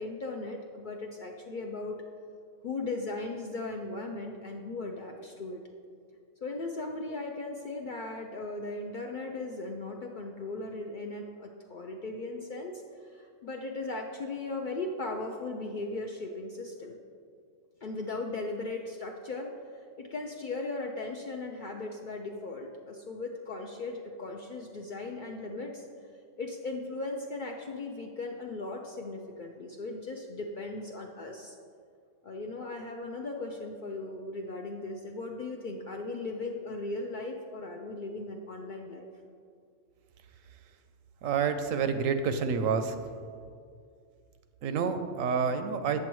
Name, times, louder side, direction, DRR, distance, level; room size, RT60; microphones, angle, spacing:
voice 1, 0.0-2.0 2.6-5.6 6.4-17.0 17.8-25.9 26.4-31.6 32.2-39.1, left 2 dB, 60° left, 2 dB, 0.5 m, -37 dB
voice 2, 41.2-43.0 44.6-46.0, right 6 dB, 90° right, 8 dB, 1.0 m, -28 dB
8.1 x 7.6 x 3.1 m, 2.3 s
omnidirectional pair, 1.3 m